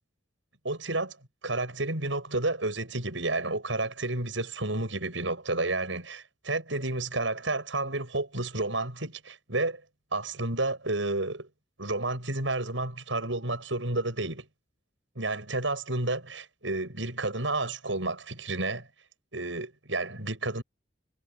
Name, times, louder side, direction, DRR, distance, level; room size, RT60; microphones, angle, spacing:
voice 1, 0.6-1.2 1.4-9.8 10.1-11.5 11.8-14.5 15.2-18.9 19.3-20.6, right 2 dB, 85° right, 8.0 m, -31 dB
head